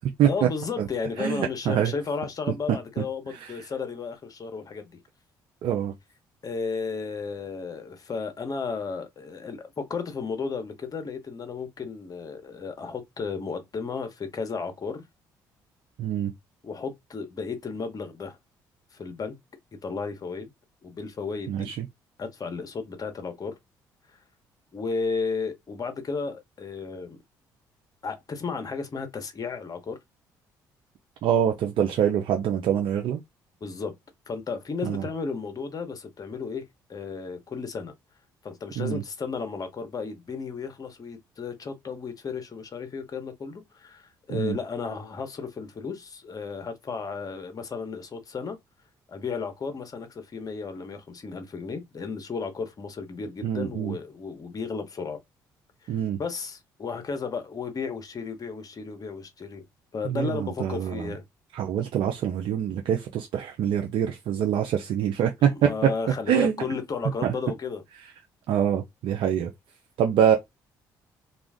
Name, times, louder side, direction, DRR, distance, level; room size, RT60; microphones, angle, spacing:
voice 1, 0.2-4.9 6.4-15.0 16.6-18.4 18.9-19.4 19.8-20.5 20.8-21.7 22.2-23.5 24.7-27.2 28.0-30.0 33.6-33.9 34.3-36.6 36.9-37.9 38.4-48.6 49.1-55.2 55.8-55.9 56.2-59.6 59.9-61.2 65.5-67.8, left 5 dB, 40° left, 1.0 m, -33 dB
voice 2, 1.2-1.9 5.6-5.9 16.0-16.3 21.5-21.7 31.2-33.2 34.8-35.0 38.8-39.0 44.3-44.5 53.4-53.9 55.9-56.2 60.1-60.3 60.6-61.0 61.5-65.7 66.3-66.5 68.5-69.5 70.0-70.4, right 9 dB, 65° right, 0.5 m, -24 dB
2.4 x 2.3 x 3.4 m
hypercardioid pair, 55°, 9 cm